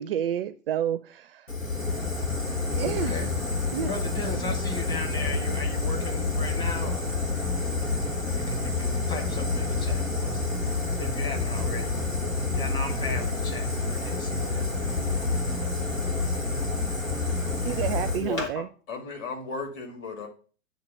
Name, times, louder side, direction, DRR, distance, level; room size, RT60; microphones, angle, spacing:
voice 1, 0.0-1.5 2.7-3.2 3.7-3.9 17.6-18.7, right 9 dB, 50° right, 0.4 m, -29 dB
Fire, 1.5-18.5, left 3 dB, 90° left, 1.6 m, -28 dB
voice 2, 2.8-3.3 3.8-7.1 8.3-10.4 11.0-11.9 12.5-14.9, left 1 dB, 10° left, 1.2 m, -36 dB
voice 3, 18.2-20.3, left 4 dB, 30° left, 1.7 m, -35 dB
8.7 x 2.9 x 6.4 m
figure-of-eight pair, 100°, 39 cm